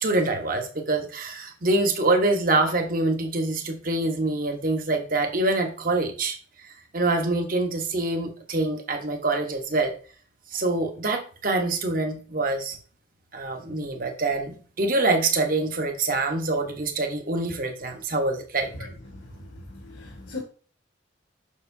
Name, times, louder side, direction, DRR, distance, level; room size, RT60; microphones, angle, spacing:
voice 1, 0.0-9.9 10.5-12.8 13.3-18.7, right 2 dB, 45° right, 1.1 m, -25 dB
voice 2, 19.1-20.4, left 2 dB, 75° left, 1.5 m, -40 dB
6.6 x 6.3 x 2.7 m
head